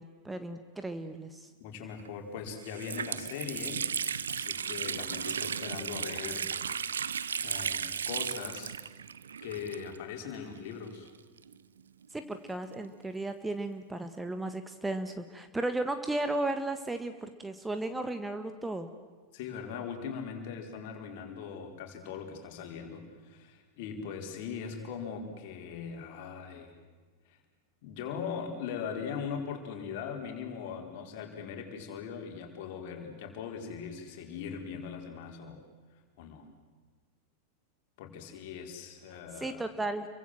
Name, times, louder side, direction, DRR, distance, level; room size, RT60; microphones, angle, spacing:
voice 1, 0.0-1.5 12.1-18.9 39.4-40.1, right 2 dB, 10° right, 8 dB, 1.5 m, -35 dB
voice 2, 1.6-3.8 4.3-6.5 7.4-8.8 9.4-11.1 19.3-26.7 27.3-27.4 27.8-35.6 36.2-36.5 38.0-39.6, left 6 dB, 50° left, 3 dB, 4.8 m, -40 dB
Water tap faucet, 2.0-2.1 2.5-10.2 10.4-10.5 11.4-12.9, right 7 dB, 70° right, 0.8 m, -35 dB
30.0 x 23.5 x 7.8 m, 1.4 s
figure-of-eight pair, 90°, 0 cm